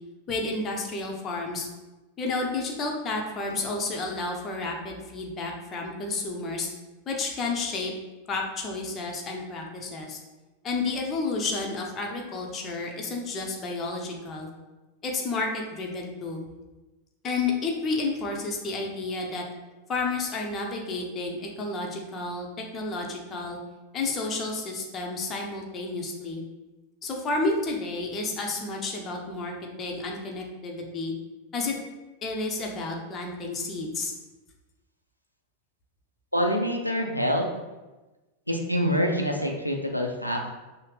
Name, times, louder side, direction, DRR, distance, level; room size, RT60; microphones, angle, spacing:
voice 1, 0.3-1.7 2.2-6.7 7.1-7.9 8.3-10.2 10.6-14.5 15.0-16.4 17.2-19.4 19.9-22.5 22.7-23.6 23.9-26.4 27.0-29.5 29.8-31.1 31.5-31.7 32.2-34.1, left 3 dB, 25° left, 0 dB, 0.8 m, -31 dB
voice 2, 36.3-37.5 38.5-40.6, equal, 90° left, 2 dB, 0.4 m, -26 dB
5.6 x 2.1 x 3.3 m, 1.1 s
figure-of-eight pair, 90°, 0 cm